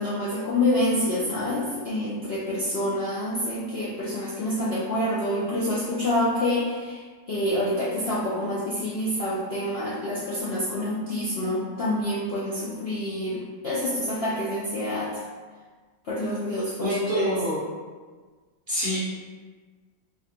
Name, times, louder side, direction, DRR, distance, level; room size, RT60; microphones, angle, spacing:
voice 1, 0.0-7.0 7.3-15.2 16.1-17.3, left 1 dB, 65° left, -8 dB, 0.6 m, -27 dB
voice 2, 16.8-17.6 18.7-19.0, equal, 55° right, -9 dB, 0.6 m, -26 dB
4.4 x 2.4 x 2.9 m, 1.5 s
omnidirectional pair, 1.7 m